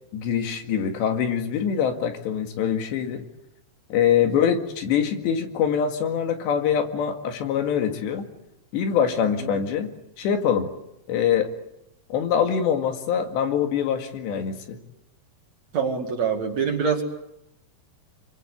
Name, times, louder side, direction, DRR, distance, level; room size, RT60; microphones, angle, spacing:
voice 1, 0.1-3.2 3.9-8.3 8.7-9.9 10.2-10.7 11.1-11.5 12.1-14.8, left 8 dB, 80° left, 5 dB, 4.2 m, -24 dB
voice 2, 15.7-17.0, right 6 dB, 45° right, 3 dB, 3.0 m, -24 dB
27.0 x 24.5 x 8.3 m, 0.83 s
omnidirectional pair, 5.0 m